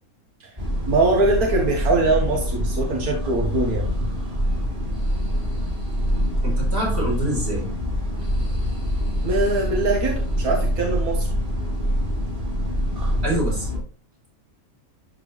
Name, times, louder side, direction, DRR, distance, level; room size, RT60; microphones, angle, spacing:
sound 1, 0.6-13.8, equal, 25° right, 3.2 m, -25 dB
voice 1, 0.8-3.9 9.2-11.3, right 2 dB, 90° right, 1 dB, 1.9 m, -22 dB
voice 2, 6.4-7.6 13.2-13.7, right 1 dB, 45° right, -4 dB, 4.7 m, -26 dB
11.5 x 4.5 x 3.3 m, 0.37 s
omnidirectional pair, 1.5 m